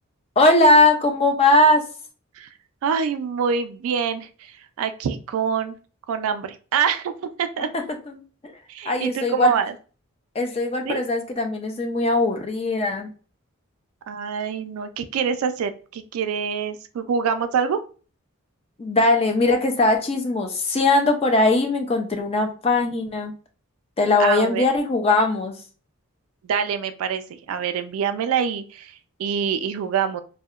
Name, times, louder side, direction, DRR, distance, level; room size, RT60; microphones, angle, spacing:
voice 1, 0.4-1.8 7.7-8.5 8.9-9.5 10.4-13.1 18.8-23.3 24.0-25.5, left 2 dB, 25° left, 4 dB, 0.4 m, -20 dB
voice 2, 2.8-4.3 4.8-5.8 6.1-7.1 7.4-7.7 8.7-9.7 10.9-11.0 14.1-17.8 24.2-24.7 26.5-27.2 27.5-28.9 29.2-30.2, right 7 dB, 75° right, 10 dB, 0.3 m, -25 dB
2.7 x 2.1 x 2.3 m, 0.37 s
head